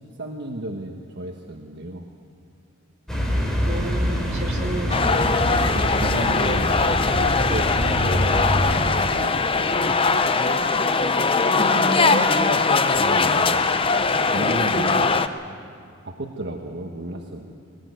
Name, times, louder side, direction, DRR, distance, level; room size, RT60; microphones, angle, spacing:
voice 1, 0.2-2.1 5.6-6.8 7.2-10.1 12.9-13.6 14.3-15.2 16.0-17.5, right 1 dB, 55° right, 1 dB, 1.4 m, -33 dB
sound 1, 3.1-8.8, equal, 5° left, 3.1 m, -25 dB
voice 2, 3.6-5.4 11.6-12.7 13.4-13.6, right 1 dB, 35° right, 0 dB, 2.6 m, -31 dB
sound 2, 4.9-15.3, left 4 dB, 25° left, 0.6 m, -21 dB
19.5 x 18.5 x 9.4 m, 2.3 s
head